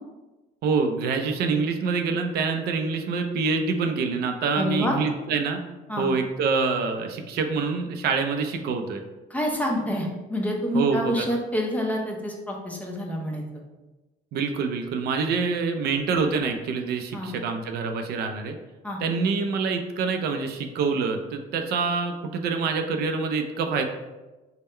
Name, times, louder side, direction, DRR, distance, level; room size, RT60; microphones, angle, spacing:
voice 1, 0.6-5.6 6.0-9.0 10.7-11.2 14.3-18.6 19.0-23.8, right 4 dB, 70° right, 5 dB, 0.4 m, -26 dB
voice 2, 4.6-5.0 5.9-6.1 9.3-13.4 17.1-17.3 18.8-19.0, equal, 10° left, 0 dB, 0.7 m, -27 dB
3.6 x 2.2 x 4.2 m, 1.1 s
cardioid pair, 110°, 17 cm